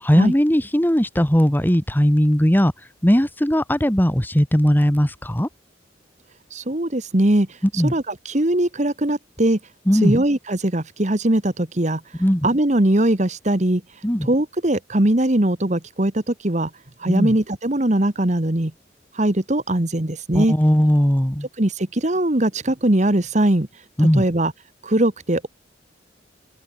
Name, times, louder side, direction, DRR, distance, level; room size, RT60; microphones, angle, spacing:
voice 1, 0.0-2.7 3.0-5.5 7.8-7.9 9.9-10.2 12.2-12.5 14.0-14.3 17.1-17.3 20.3-21.5 24.0-24.2, equal, 10° left, 1.4 m, -18 dB
voice 2, 6.5-7.5 7.7-9.6 10.0-12.0 12.4-13.8 14.2-16.7 17.0-18.7 19.1-20.5 21.6-23.7 24.2-24.5 24.8-25.5, right 1 dB, 40° right, 1.5 m, -20 dB
open air
head